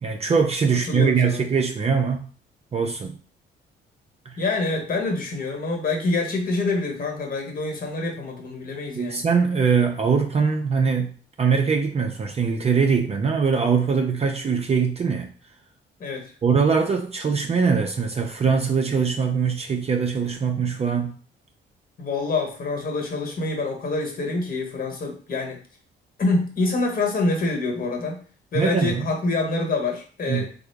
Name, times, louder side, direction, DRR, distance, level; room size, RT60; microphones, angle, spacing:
voice 1, 0.0-2.2 2.7-3.2 4.3-4.4 9.0-15.3 16.4-21.2 28.5-29.0 30.3-30.5, right 5 dB, 30° right, 3 dB, 0.4 m, -22 dB
voice 2, 0.9-1.4 4.4-9.2 16.0-16.3 22.0-25.6 26.2-28.2 28.5-30.5, left 3 dB, 45° left, 2 dB, 1.1 m, -26 dB
3.5 x 2.0 x 3.4 m, 0.41 s
cardioid pair, 90°, 20 cm